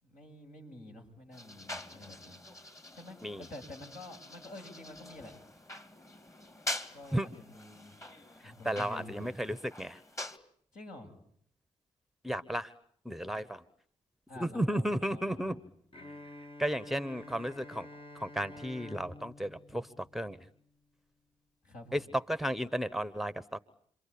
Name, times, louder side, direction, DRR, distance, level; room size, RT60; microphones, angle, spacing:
voice 1, 0.0-2.4 2.9-5.3 6.9-7.9 8.4-9.3 10.7-11.1 14.3-15.7 21.6-22.0, left 2 dB, 65° left, 0 dB, 7.2 m, -49 dB
sound 1, 1.3-10.4, left 1 dB, 20° left, 2.2 m, -45 dB
voice 2, 8.4-10.0 12.2-12.7 13.0-13.6 14.4-15.6 16.6-17.9 18.1-20.5 21.9-23.6, equal, ahead, 16 dB, 1.1 m, -34 dB
Bowed string instrument, 15.9-20.8, left 1 dB, 40° left, 1.8 m, -50 dB
28.5 x 23.5 x 8.6 m, 0.65 s
hypercardioid pair, 40°, 15 cm